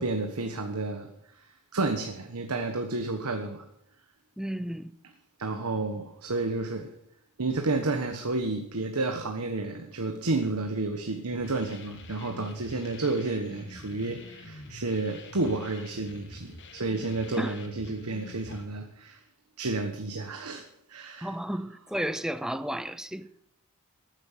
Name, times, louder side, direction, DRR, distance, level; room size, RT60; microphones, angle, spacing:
voice 1, 0.0-3.7 5.4-6.9 7.4-19.2 19.6-21.3, right 2 dB, 80° right, 1.3 m, -31 dB
voice 2, 4.4-4.9 17.4-17.6 17.9-18.0 21.2-23.3, equal, 5° right, 0.6 m, -33 dB
sound 1, 11.3-18.7, left 2 dB, 55° left, 1.7 m, -46 dB
14.0 x 9.0 x 7.3 m
head